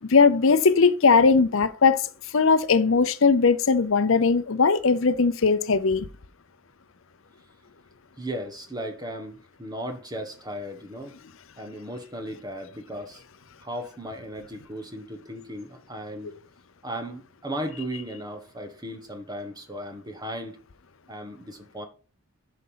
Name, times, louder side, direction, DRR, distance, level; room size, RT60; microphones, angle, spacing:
voice 1, 0.1-2.1 2.3-6.1, left 4 dB, 60° left, 0.7 m, -19 dB
voice 2, 8.2-11.1 11.6-13.2 13.6-16.3 16.8-20.6 21.1-21.8, equal, 20° right, 1.4 m, -36 dB
11.0 x 5.3 x 5.6 m
head